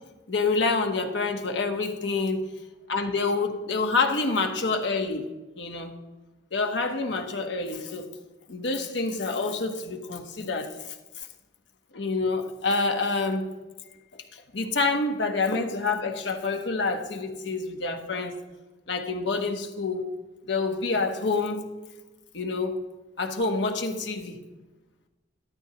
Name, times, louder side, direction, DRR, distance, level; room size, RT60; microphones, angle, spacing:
voice 1, 0.3-2.5 2.9-5.3 5.6-5.9 6.5-8.1 8.5-11.3 11.9-13.5 14.1-18.3 18.9-20.0 20.4-21.6 22.3-22.7 23.2-24.4, left 3 dB, 75° left, 4 dB, 1.1 m, -27 dB
13.0 x 12.5 x 2.9 m, 1.1 s
head